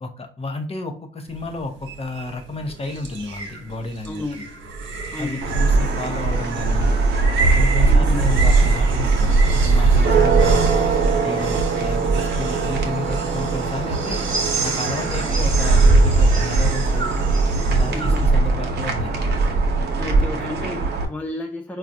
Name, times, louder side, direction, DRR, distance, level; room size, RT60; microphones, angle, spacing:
voice 1, 0.0-4.2 5.2-6.9 7.4-10.8 11.2-14.3 14.6-17.1 17.7-19.1, left 2 dB, 30° left, 5 dB, 0.8 m, -31 dB
sound 1, 1.3-18.2, right 4 dB, 75° right, 1.0 m, -28 dB
voice 2, 4.1-4.6 5.1-5.5 7.9-8.2 17.9-18.3 20.0-21.8, left 2 dB, 5° left, 3 dB, 0.4 m, -32 dB
sound 2, 5.4-21.0, right 3 dB, 55° right, 0.8 m, -19 dB
4.5 x 2.3 x 2.6 m, 0.43 s
cardioid pair, 90°, 20 cm